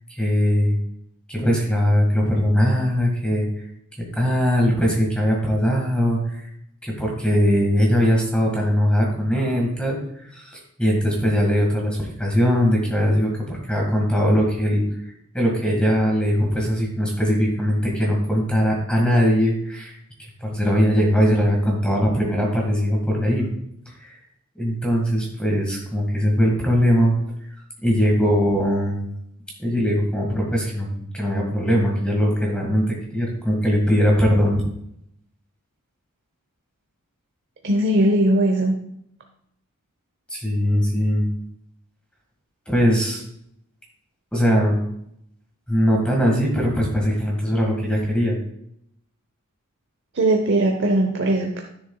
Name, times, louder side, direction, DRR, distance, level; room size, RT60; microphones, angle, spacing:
voice 1, 0.1-0.8 1.3-3.6 4.1-6.5 6.8-14.8 15.3-20.0 20.4-23.5 24.0-24.1 24.6-27.1 27.8-29.0 29.6-34.6 40.3-41.2 42.7-43.2 44.3-44.8 45.7-48.4, equal, 5° left, -1 dB, 1.7 m, -20 dB
voice 2, 37.6-38.8 50.1-51.6, right 1 dB, 55° right, 3 dB, 0.8 m, -19 dB
12.5 x 7.1 x 2.3 m, 0.74 s
head